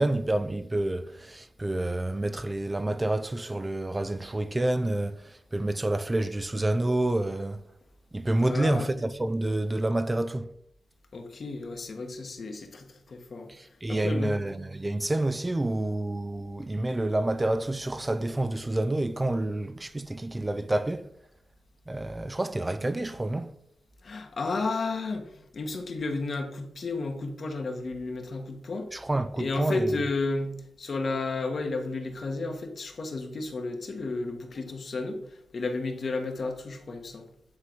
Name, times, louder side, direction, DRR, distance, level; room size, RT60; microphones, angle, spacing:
voice 1, 0.0-7.6 8.1-10.5 13.5-21.1 21.9-23.5 28.9-29.9, right 1 dB, 25° right, 0.5 m, -28 dB
voice 2, 8.4-8.9 11.1-14.4 24.0-29.1 29.4-37.3, left 3 dB, 60° left, 1.3 m, -32 dB
9.5 x 3.8 x 4.6 m
cardioid pair, 50°, 0 cm